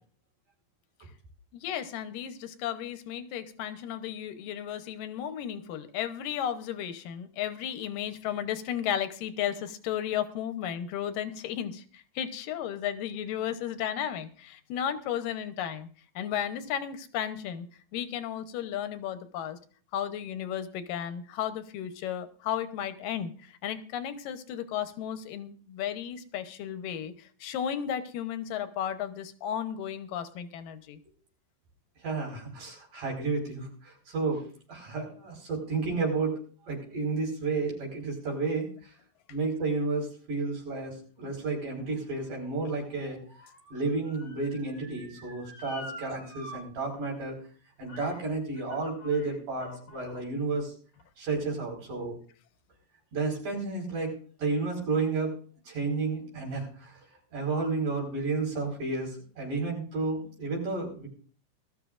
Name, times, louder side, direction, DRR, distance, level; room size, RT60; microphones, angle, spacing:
voice 1, 1.5-15.9 16.2-17.7 17.9-19.6 19.9-31.0, left 9 dB, 85° left, 10 dB, 2.6 m, -34 dB
voice 2, 32.0-34.4 34.7-36.4 36.7-38.9 39.3-43.2 43.7-47.4 47.8-50.7 51.2-52.2 53.1-55.4 55.7-57.0 57.3-61.1, right 3 dB, 65° right, -1 dB, 6.3 m, -31 dB
Motor vehicle (road) / Siren, 41.7-46.6 46.9-47.0 47.9-48.2 48.5-50.2 50.9-51.0, left 1 dB, 45° left, 5.3 m, -48 dB
20.5 x 13.5 x 2.5 m, 0.43 s
omnidirectional pair, 3.8 m